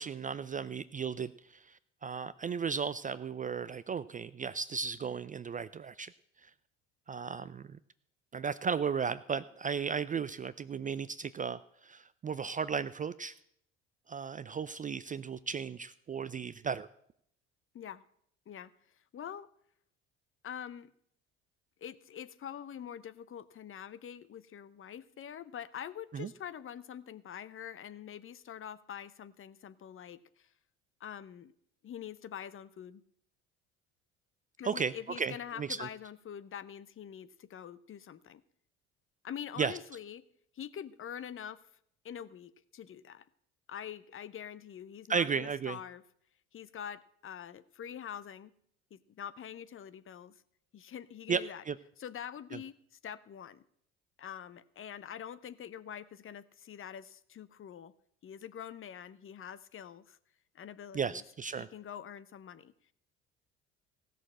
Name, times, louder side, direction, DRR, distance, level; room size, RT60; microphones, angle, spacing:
voice 1, 0.0-6.1 6.4-6.5 7.1-7.8 8.3-13.3 14.1-16.9 26.1-26.3 34.6-35.9 39.6-39.8 45.1-45.8 51.3-51.8 60.9-61.7, right 6 dB, 25° right, 15 dB, 0.4 m, -35 dB
voice 2, 19.1-19.5 20.4-20.9 21.8-30.5 31.0-31.5 31.8-33.0 34.6-38.4 39.2-40.2 40.5-41.6 42.0-43.3 43.7-46.0 46.5-48.5 48.9-50.4 50.7-51.6 52.0-53.6 54.2-57.9 58.2-60.2 60.5-61.2 61.6-62.7, left 9 dB, 35° left, 16 dB, 0.7 m, -45 dB
16.0 x 6.7 x 7.5 m, 0.71 s
hypercardioid pair, 60°, 36 cm